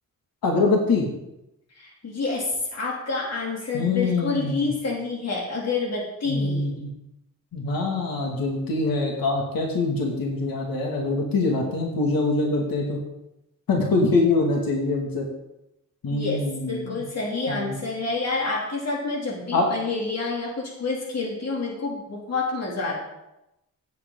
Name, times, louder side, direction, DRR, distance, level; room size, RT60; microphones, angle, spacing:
voice 1, 0.4-1.1 3.7-4.7 6.3-6.9 7.5-13.0 13.7-15.3 16.0-17.0 17.5-17.7 19.5-19.7, left 3 dB, 90° left, -1 dB, 2.5 m, -24 dB
voice 2, 1.8-6.7 16.1-23.0, left 3 dB, 50° left, -2 dB, 3.1 m, -28 dB
16.5 x 8.4 x 4.0 m, 0.90 s
wide cardioid pair, 180°, 34 cm